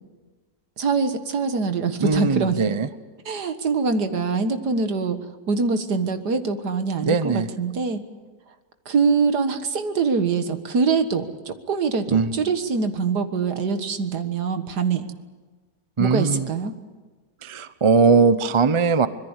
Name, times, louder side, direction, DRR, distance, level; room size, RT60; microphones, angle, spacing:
voice 1, 0.8-2.6 3.3-8.0 8.9-15.1 16.0-16.7, right 5 dB, 65° right, 9 dB, 2.1 m, -24 dB
voice 2, 2.0-2.9 7.0-7.5 12.1-12.3 16.0-16.5 17.4-19.1, right 4 dB, 30° right, 13 dB, 0.5 m, -20 dB
25.0 x 21.5 x 8.2 m, 1.3 s
omnidirectional pair, 1.9 m